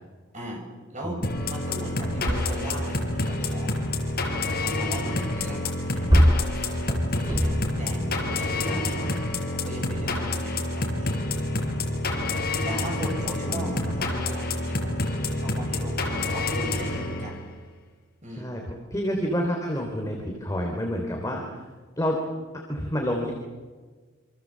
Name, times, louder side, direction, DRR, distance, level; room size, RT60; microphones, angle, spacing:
voice 1, 0.3-1.2 1.5-3.8 4.6-6.2 7.1-9.1 9.5-11.2 12.6-14.9 15.4-17.4 18.2-18.5, right 1 dB, 35° right, 1 dB, 7.6 m, -38 dB
sound 1, 1.2-17.5, left 2 dB, 45° left, 5.0 m, -28 dB
sound 2, 1.9-3.3 5.6-8.0 8.7-8.8, equal, 20° right, 2.8 m, -24 dB
voice 2, 7.9-8.4 8.7-9.2 13.5-14.0 18.4-21.4 22.0-22.2 22.7-23.3, equal, 15° left, 1 dB, 3.4 m, -29 dB
28.0 x 26.0 x 7.6 m, 1.4 s
head